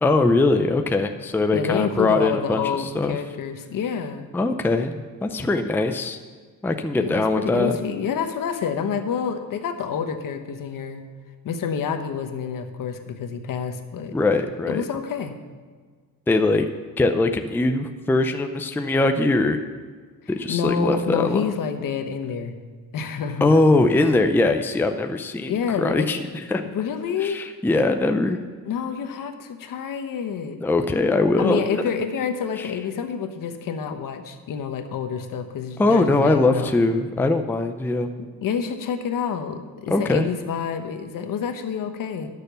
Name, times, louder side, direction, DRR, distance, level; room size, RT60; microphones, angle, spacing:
voice 1, 0.0-3.2 4.3-6.2 6.6-7.7 14.1-14.8 16.3-16.7 17.0-19.6 20.3-21.5 23.4-26.2 26.5-26.7 27.2-28.4 30.6-31.8 32.6-32.7 35.8-38.1 39.9-40.3, left 2 dB, 5° left, 6 dB, 0.5 m, -21 dB
voice 2, 1.5-4.3 7.0-11.0 11.4-14.2 14.7-15.3 20.5-22.6 22.9-23.6 24.0-24.1 25.5-26.1 26.6-27.4 28.6-30.6 31.4-36.7 38.2-42.3, left 7 dB, 65° left, 7 dB, 1.1 m, -28 dB
11.5 x 6.8 x 6.8 m, 1.5 s
cardioid pair, 115°, 36 cm